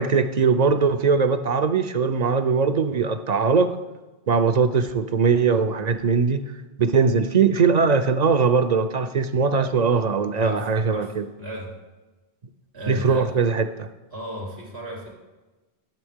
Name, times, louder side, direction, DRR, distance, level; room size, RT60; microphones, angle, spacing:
voice 1, 0.0-3.8 4.3-6.5 6.8-11.2 12.9-13.9, right 5 dB, 55° right, 9 dB, 0.5 m, -20 dB
voice 2, 10.3-11.1 11.4-11.7 12.7-13.3 14.1-15.1, equal, 80° right, -2 dB, 3.1 m, -35 dB
12.0 x 7.0 x 3.6 m, 1.1 s
omnidirectional pair, 1.1 m